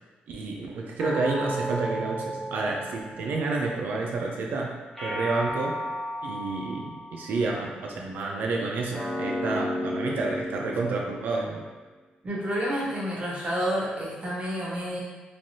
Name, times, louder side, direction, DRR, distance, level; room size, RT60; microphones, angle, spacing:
voice 1, 0.3-5.8 6.2-11.6, right 3 dB, 75° right, 0 dB, 0.4 m, -30 dB
sound 1, 1.0-3.6 5.0-7.5 8.9-11.5, equal, ahead, 1.0 m, -33 dB
voice 2, 12.2-15.0, equal, 40° right, -5 dB, 0.6 m, -29 dB
3.2 x 2.5 x 2.6 m, 1.3 s
cardioid pair, 100°, 3 cm